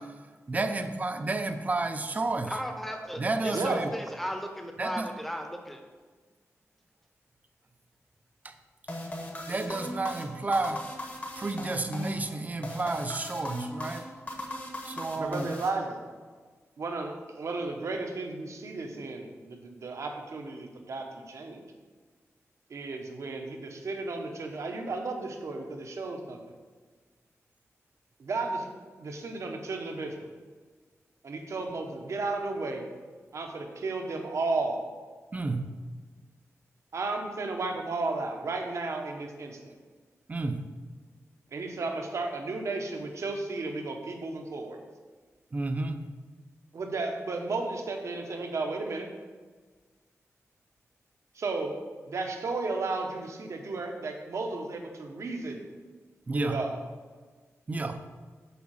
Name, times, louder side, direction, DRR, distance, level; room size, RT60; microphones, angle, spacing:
voice 1, 0.5-2.6 3.2-3.9 4.8-5.1 8.4-8.5 9.5-10.8 11.4-14.0 14.8-15.5 35.3-35.7 40.3-40.6 45.5-46.0 56.3-56.6 57.7-58.0, right 2 dB, 30° right, 8 dB, 0.6 m, -31 dB
voice 2, 2.5-5.8, equal, 5° left, 4 dB, 0.9 m, -36 dB
voice 3, 3.5-3.8 15.2-16.0 16.8-21.6 22.7-26.4 28.2-28.7 29.0-30.2 31.2-32.8 33.3-34.8 36.9-39.7 41.5-44.8 46.7-49.1 51.4-51.8 52.1-55.6 56.3-56.8, right 3 dB, 65° right, 3 dB, 1.1 m, -33 dB
sound 1, 8.9-16.3, left 1 dB, 35° left, 1.2 m, -39 dB
7.0 x 5.0 x 6.4 m, 1.4 s
wide cardioid pair, 160°, 5 cm